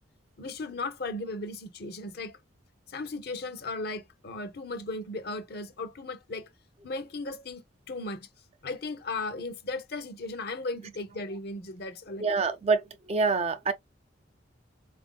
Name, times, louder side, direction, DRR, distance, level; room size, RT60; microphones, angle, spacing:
voice 1, 0.4-2.4 2.9-6.5 6.8-8.3 8.6-12.3, left 2 dB, 50° left, 0.7 m, -36 dB
voice 2, 12.2-13.7, right 4 dB, 30° right, 0.4 m, -26 dB
4.4 x 2.5 x 2.2 m
head